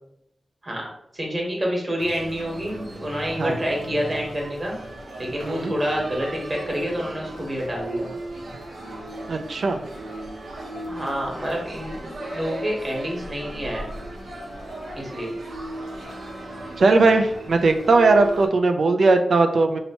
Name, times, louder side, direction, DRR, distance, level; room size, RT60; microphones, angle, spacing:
voice 1, 1.1-4.7 5.2-8.1 10.9-13.8 15.0-15.3, equal, 25° right, -1 dB, 1.1 m, -28 dB
sound 1, 2.0-18.5, right 1 dB, 80° right, 0.8 m, -36 dB
voice 2, 9.3-9.8 16.8-19.8, right 3 dB, 65° right, 6 dB, 0.4 m, -18 dB
4.3 x 2.8 x 2.8 m, 0.76 s
wide cardioid pair, 170°, 0 cm